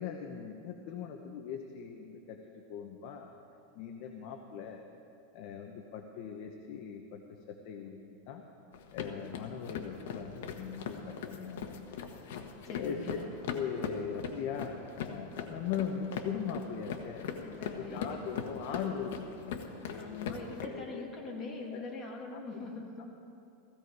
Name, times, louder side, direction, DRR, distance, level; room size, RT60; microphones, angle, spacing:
voice 1, 0.0-3.3 3.7-4.8 5.3-7.2 7.5-8.0 8.3-8.4 8.9-11.8 12.8-13.0 13.5-17.3 17.8-20.1 20.6-21.1 21.7-21.8 22.3-22.4, left 7 dB, 50° left, 4 dB, 1.0 m, -40 dB
sound 1, 8.7-20.7, left 6 dB, 80° left, 1.3 m, -40 dB
voice 2, 12.6-13.3 17.4-18.1 19.9-23.1, left 3 dB, 25° left, -1 dB, 2.2 m, -42 dB
16.5 x 15.5 x 4.9 m, 2.7 s
supercardioid pair, 160°, 0 cm